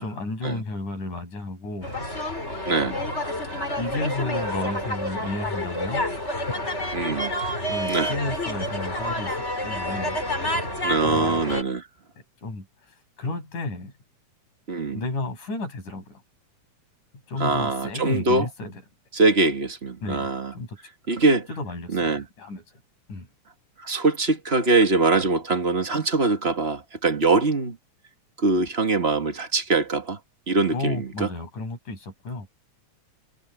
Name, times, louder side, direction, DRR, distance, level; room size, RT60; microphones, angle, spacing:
voice 1, 0.0-2.0 2.8-3.0 3.8-6.1 7.7-10.2 11.0-11.4 12.4-12.7 13.2-13.9 14.9-16.2 17.3-18.7 20.0-20.3 20.5-20.8 21.5-22.8 23.1-23.3 30.7-32.5, left 2 dB, 75° left, 8.5 m, -32 dB
sound 1, 1.8-11.6, left 1 dB, 20° left, 5.7 m, -29 dB
voice 2, 2.7-3.0 6.9-7.3 7.9-8.1 10.8-11.8 14.7-15.0 17.4-18.5 19.1-20.5 21.1-21.5 21.9-22.3 23.8-27.8 28.4-30.2 30.5-31.3, right 3 dB, 25° right, 1.4 m, -23 dB
omnidirectional pair, 3.6 m